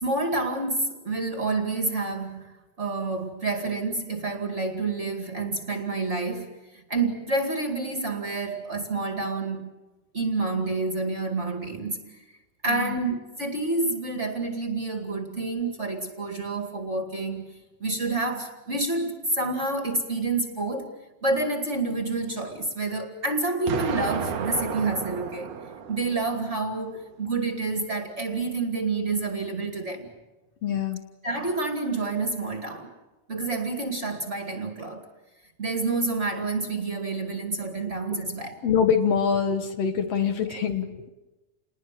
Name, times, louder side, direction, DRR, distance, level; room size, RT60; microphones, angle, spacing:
voice 1, 0.0-9.7 10.1-12.2 12.6-17.4 17.8-20.9 21.2-25.5 25.9-30.1 31.2-32.9 33.3-35.1 35.6-38.6 40.5-40.6, right 3 dB, 25° right, 5 dB, 2.2 m, -28 dB
voice 2, 12.7-13.0 30.6-31.0 38.1-38.2 38.6-41.1, left 7 dB, 60° left, 7 dB, 2.3 m, -25 dB
Explosion, 23.7-26.6, right 7 dB, 80° right, 2.9 m, -32 dB
29.0 x 20.5 x 7.6 m, 1.1 s
omnidirectional pair, 3.3 m